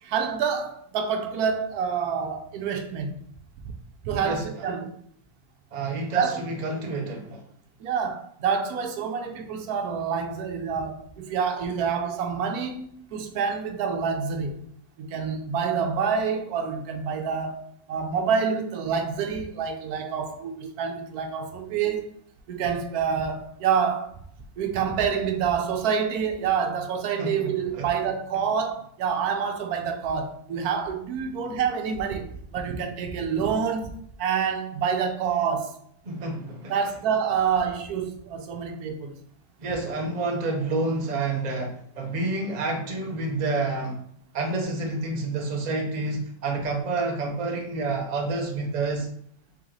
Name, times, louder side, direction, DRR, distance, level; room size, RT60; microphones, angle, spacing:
voice 1, 0.0-3.2 3.7-3.8 4.0-4.9 6.1-6.4 7.8-14.7 15.0-22.1 22.5-24.1 24.6-35.8 36.7-39.2, right 6 dB, 85° right, 1.2 m, -27 dB
voice 2, 4.2-4.7 5.7-7.4 27.2-27.5 27.7-27.9 36.1-36.7 39.6-44.0 44.3-49.1, right 3 dB, 35° right, 0.7 m, -29 dB
3.8 x 3.0 x 3.7 m
omnidirectional pair, 1.6 m